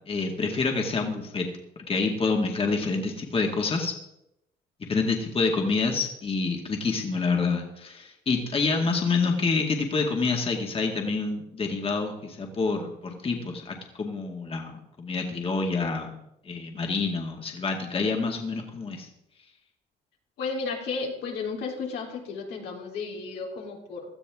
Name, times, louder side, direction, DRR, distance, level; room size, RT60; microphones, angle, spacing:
voice 1, 0.1-1.5 1.9-3.9 4.8-16.1 16.5-19.1, left 4 dB, 35° left, 2 dB, 2.1 m, -27 dB
voice 2, 20.4-24.1, left 4 dB, 85° left, -1 dB, 3.6 m, -33 dB
17.0 x 13.0 x 3.7 m, 0.83 s
cardioid pair, 90°, 17 cm